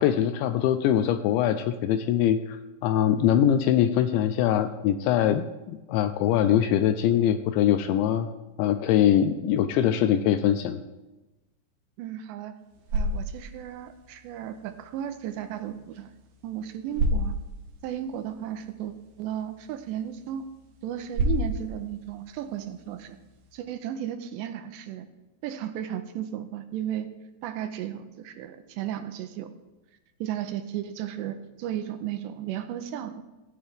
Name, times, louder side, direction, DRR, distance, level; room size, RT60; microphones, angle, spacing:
voice 1, 0.0-8.3 8.6-10.8, left 10 dB, 85° left, 9 dB, 2.7 m, -23 dB
voice 2, 12.0-12.5 12.9-16.1 16.4-17.3 17.8-18.9 19.2-20.5 20.8-23.2 23.5-25.1 25.4-27.1 27.4-29.5 30.2-33.2, right 10 dB, 85° right, 8 dB, 2.6 m, -34 dB
sound 1, 12.5-23.6, right 1 dB, 65° right, 2.2 m, -34 dB
25.5 x 9.2 x 3.4 m, 1.1 s
omnidirectional pair, 5.8 m